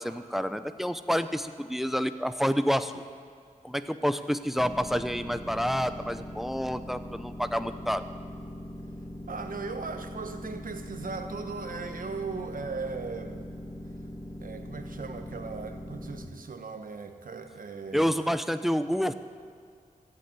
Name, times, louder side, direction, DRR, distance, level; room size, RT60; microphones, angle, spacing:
voice 1, 0.0-3.0 3.6-8.0 17.9-19.1, equal, ahead, 11 dB, 0.6 m, -28 dB
sound 1, 4.6-16.2, left 1 dB, 20° left, 2.0 m, -41 dB
voice 2, 9.3-13.4 14.4-18.1, right 4 dB, 75° right, 7 dB, 1.3 m, -38 dB
14.5 x 8.2 x 9.5 m, 2.3 s
wide cardioid pair, 85°, 14 cm